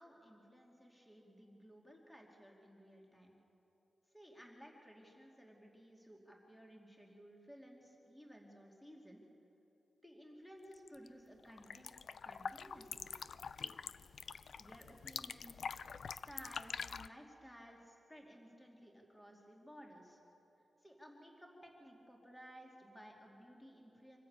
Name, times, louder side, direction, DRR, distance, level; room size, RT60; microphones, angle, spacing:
voice 1, 0.0-3.4 4.1-9.2 10.0-13.1 14.6-20.2 20.8-24.2, equal, 5° left, 0 dB, 2.6 m, -57 dB
sound 1, 10.7-11.1 11.4-17.1, left 6 dB, 70° left, 0.4 m, -46 dB
25.0 x 14.5 x 8.8 m, 3.0 s
wide cardioid pair, 175°, 0 cm